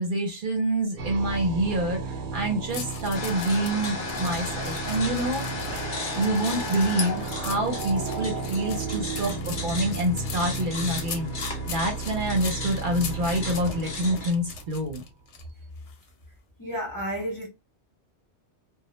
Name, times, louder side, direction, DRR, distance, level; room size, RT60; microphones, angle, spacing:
voice 1, 0.0-5.5 5.8-9.3 9.6-11.3 11.7-15.0, right 1 dB, 55° right, 0.8 m, -27 dB
sound 1, 1.0-15.1, right 4 dB, 90° right, 0.9 m, -34 dB
sound 2, 2.7-15.4 15.9-16.1, left 6 dB, 90° left, 0.9 m, -41 dB
sound 3, 3.1-14.3, left 4 dB, 55° left, 0.8 m, -36 dB
voice 2, 16.6-17.5, equal, 25° left, 0.5 m, -31 dB
2.1 x 2.0 x 2.8 m
omnidirectional pair, 1.1 m